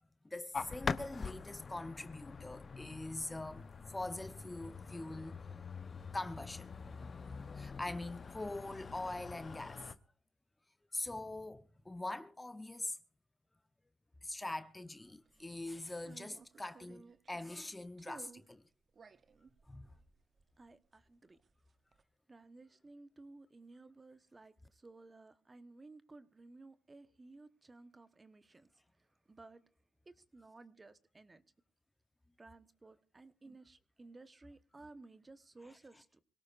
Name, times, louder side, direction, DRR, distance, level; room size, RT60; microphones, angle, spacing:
voice 1, 0.2-5.4 6.1-6.7 7.5-9.8 10.9-13.0 14.2-18.6 19.7-19.9 35.6-35.7, left 2 dB, 15° left, 0.9 m, -43 dB
sound 1, 0.5-9.9, left 5 dB, 40° left, 0.9 m, -44 dB
sound 2, 15.1-15.5 16.0-17.7 18.0-18.5 18.9-21.2 21.4-22.0, right 5 dB, 40° right, 0.9 m, -58 dB
voice 2, 20.6-21.4 22.3-28.7 29.0-29.7 30.0-31.4 32.4-36.2, right 3 dB, 25° right, 1.1 m, -57 dB
25.0 x 17.5 x 2.5 m
cardioid pair, 90°, 0 cm